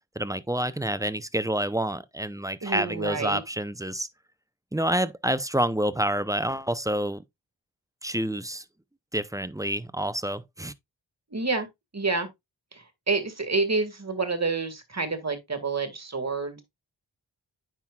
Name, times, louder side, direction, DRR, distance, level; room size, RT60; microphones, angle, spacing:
voice 1, 0.2-4.1 4.7-7.2 8.0-8.6 9.1-10.7, right 1 dB, 10° right, 0.6 m, -28 dB
voice 2, 2.6-3.4 11.3-11.7 11.9-12.3 12.7-16.6, right 3 dB, 35° right, 2.0 m, -28 dB
9.0 x 6.0 x 2.3 m
wide cardioid pair, 55°, 45 cm